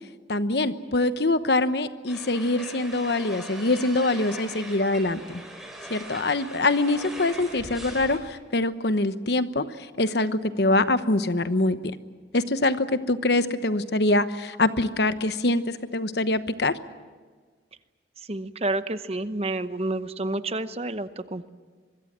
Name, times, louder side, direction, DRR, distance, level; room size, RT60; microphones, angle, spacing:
voice 1, 0.3-5.4 5.9-9.6 10.0-11.8 12.3-16.8, left 2 dB, 65° left, 12 dB, 1.1 m, -24 dB
sound 1, 2.1-8.2, right 1 dB, ahead, 4.8 m, -41 dB
voice 2, 18.2-21.5, right 2 dB, 35° right, 12 dB, 0.9 m, -29 dB
25.0 x 22.5 x 7.5 m, 1.5 s
head